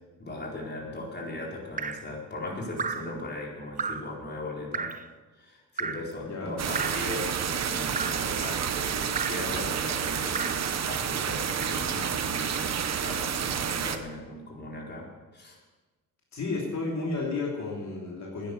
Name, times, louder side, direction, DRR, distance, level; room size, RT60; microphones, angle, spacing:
voice 1, 0.2-4.9 5.3-15.6, left 2 dB, 30° left, -2 dB, 4.3 m, -38 dB
Drip, 1.8-2.1 2.8-3.1 3.8-4.1 4.7-5.1 5.8-6.1 6.7-7.1 8.0-8.3 9.2-9.5 10.3-10.7 11.6-11.9 12.8-13.0, right 5 dB, 25° right, 0.7 m, -34 dB
sound 1, 6.6-14.0, right 8 dB, 50° right, 1.1 m, -30 dB
voice 2, 16.3-18.5, left 3 dB, 55° left, -2 dB, 3.1 m, -32 dB
10.5 x 10.0 x 8.0 m, 1.2 s
cardioid pair, 85°, 34 cm